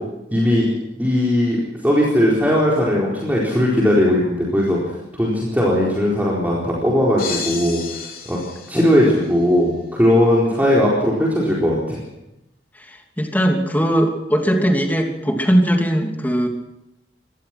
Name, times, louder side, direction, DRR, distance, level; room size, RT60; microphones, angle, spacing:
voice 1, 0.3-0.7 1.0-1.6 1.8-4.8 5.1-7.8 8.3-8.4 8.7-12.0, left 1 dB, 10° right, -5 dB, 4.3 m, -18 dB
sound 1, 7.2-9.4, left 6 dB, 55° left, 4.0 m, -32 dB
voice 2, 12.8-16.5, equal, 10° left, 3 dB, 2.8 m, -19 dB
24.5 x 18.0 x 6.1 m, 0.89 s
head